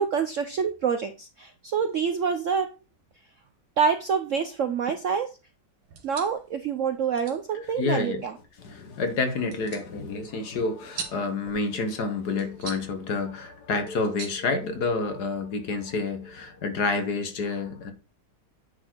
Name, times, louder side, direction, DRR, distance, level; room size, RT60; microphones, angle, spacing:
voice 1, 0.0-2.7 3.8-5.3 6.0-8.3, right 6 dB, 90° right, 0.6 m, -26 dB
sound 1, 5.8-15.3, right 6 dB, 70° right, 2.2 m, -45 dB
voice 2, 7.8-8.2 8.6-17.9, left 3 dB, 55° left, 1.7 m, -29 dB
9.6 x 4.2 x 4.5 m
omnidirectional pair, 2.2 m